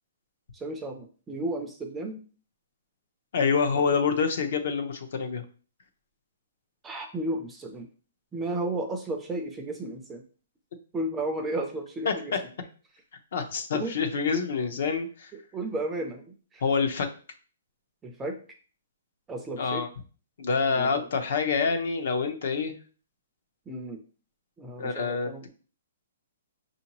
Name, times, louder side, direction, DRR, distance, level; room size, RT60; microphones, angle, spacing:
voice 1, 0.5-2.2 6.8-7.9 8.3-10.2 10.9-12.3 13.8-14.0 15.5-16.6 18.0-18.4 19.3-19.8 20.7-21.1 23.7-24.0 24.6-25.4, right 2 dB, 10° right, 4 dB, 0.4 m, -33 dB
voice 2, 3.3-5.4 12.0-12.1 13.3-15.3 16.6-17.1 19.6-19.9 20.4-22.8 24.8-25.5, left 5 dB, 55° left, 8 dB, 0.8 m, -27 dB
5.9 x 2.7 x 3.0 m, 0.39 s
hypercardioid pair, 165°, 0 cm